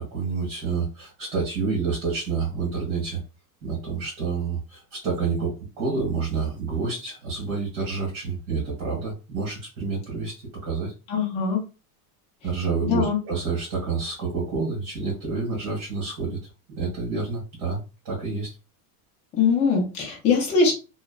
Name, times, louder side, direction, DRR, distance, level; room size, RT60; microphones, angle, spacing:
voice 1, 0.0-3.2 3.6-10.3 10.6-10.9 12.4-16.4 16.7-18.5, right 4 dB, 45° right, -5 dB, 1.5 m, -28 dB
voice 2, 11.1-11.6 12.8-13.2 19.3-20.7, left 5 dB, 15° left, -3 dB, 0.5 m, -22 dB
3.0 x 2.2 x 2.3 m, 0.31 s
cardioid pair, 175°, 45 cm